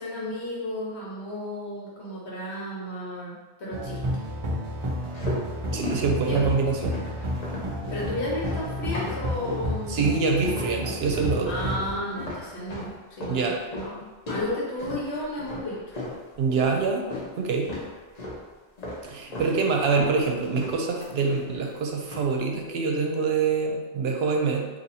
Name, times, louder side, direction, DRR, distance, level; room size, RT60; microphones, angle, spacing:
voice 1, 0.0-3.3 3.6-4.0 6.3-6.5 7.9-10.0 11.5-16.0 19.4-19.5, left 1 dB, 85° left, -6 dB, 1.4 m, -33 dB
sound 1, 3.7-11.9, equal, 45° right, 0.4 m, -31 dB
sound 2, 4.8-9.7 10.0-10.8 11.1-17.3 17.6-18.4 18.8-19.6 19.8-21.7 22.0-22.4, left 2 dB, 40° left, 0.8 m, -36 dB
voice 2, 5.7-7.0 9.9-11.5 13.3-13.6 16.4-17.1 17.4-17.7 19.0-24.7, right 4 dB, 75° right, 2 dB, 0.8 m, -25 dB
2.8 x 2.7 x 4.1 m, 1.3 s
omnidirectional pair, 1.1 m